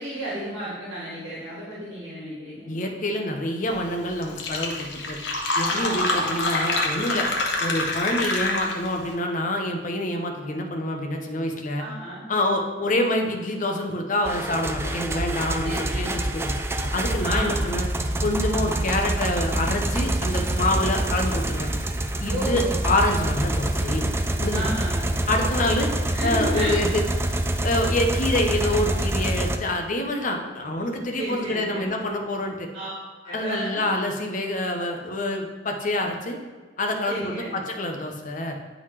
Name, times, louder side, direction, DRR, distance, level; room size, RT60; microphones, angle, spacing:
voice 1, 0.0-2.7 5.7-6.3 11.8-12.2 15.6-16.1 17.2-17.6 22.3-22.7 24.5-25.1 26.0-26.7 31.2-31.9 32.7-32.9 33.2-33.8 37.1-37.6, right 1 dB, 70° right, -9 dB, 1.9 m, -32 dB
voice 2, 2.7-5.2 5.5-7.3 7.6-11.8 12.3-16.5 16.9-17.9 18.2-21.7 22.2-24.1 24.4-24.7 25.3-25.9 26.2-27.0 27.6-32.7 33.3-36.4 36.8-38.6, left 1 dB, 45° left, 3 dB, 0.8 m, -26 dB
Fill (with liquid), 3.9-4.0 4.2-9.0, left 2 dB, 80° left, 0.9 m, -26 dB
sound 1, 14.2-29.6, right 1 dB, 15° right, 0.3 m, -26 dB
9.1 x 3.9 x 3.2 m, 1.4 s
head